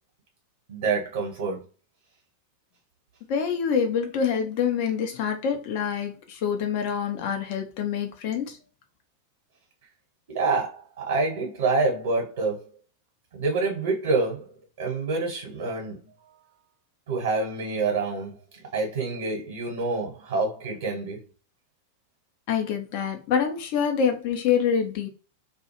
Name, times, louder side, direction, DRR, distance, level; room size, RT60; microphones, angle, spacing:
voice 1, 0.7-1.6 10.3-12.7 13.3-14.5 14.8-16.1 17.1-18.4 18.7-21.2, right 3 dB, 55° right, 1.0 m, -27 dB
voice 2, 3.3-8.6 22.5-25.1, left 7 dB, 45° left, 0.7 m, -26 dB
2.4 x 2.3 x 2.9 m
figure-of-eight pair, 90°, 0 cm